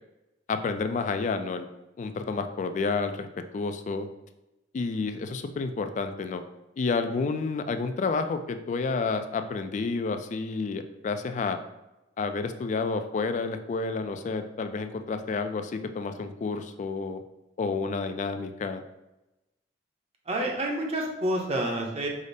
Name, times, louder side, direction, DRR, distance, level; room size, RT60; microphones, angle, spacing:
voice 1, 0.5-1.7 2.0-3.3 3.5-4.1 4.7-6.4 6.8-11.6 12.2-17.2 17.6-18.8, left 4 dB, 45° left, 8 dB, 0.3 m, -30 dB
voice 2, 20.3-22.1, right 1 dB, 35° right, 0 dB, 0.8 m, -28 dB
5.0 x 2.0 x 4.0 m, 0.97 s
head